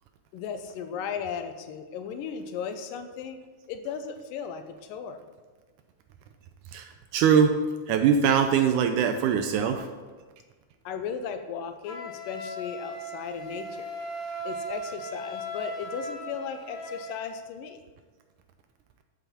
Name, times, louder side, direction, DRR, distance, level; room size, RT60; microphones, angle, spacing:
voice 1, 0.3-3.4 3.7-5.2 10.9-13.9 14.4-17.8, left 6 dB, 85° left, 8 dB, 2.4 m, -36 dB
voice 2, 7.1-7.6 7.9-9.9, right 7 dB, 80° right, 7 dB, 1.9 m, -22 dB
Wind instrument woodwind instrument, 11.8-17.3, equal, 55° left, 2.8 m, -37 dB
12.0 x 7.1 x 4.3 m, 1.4 s
omnidirectional pair, 3.9 m